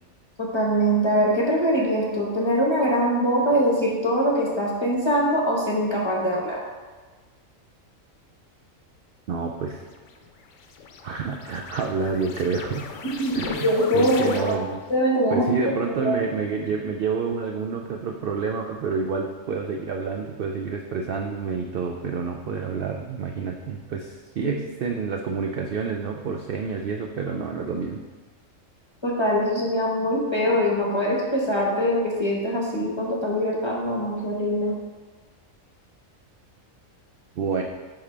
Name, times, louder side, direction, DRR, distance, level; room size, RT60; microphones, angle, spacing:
voice 1, 0.4-6.6 13.0-14.6 14.9-15.5 15.9-16.2 24.4-24.5 29.0-34.7, equal, 25° left, -3 dB, 1.0 m, -23 dB
voice 2, 9.3-9.8 11.0-12.9 13.3-14.8 15.3-28.0 37.4-37.6, right 5 dB, 65° right, 2 dB, 0.6 m, -28 dB
sound 1, 10.0-14.9, left 6 dB, 70° left, 0.9 m, -38 dB
10.0 x 3.8 x 3.3 m, 1.3 s
omnidirectional pair, 1.4 m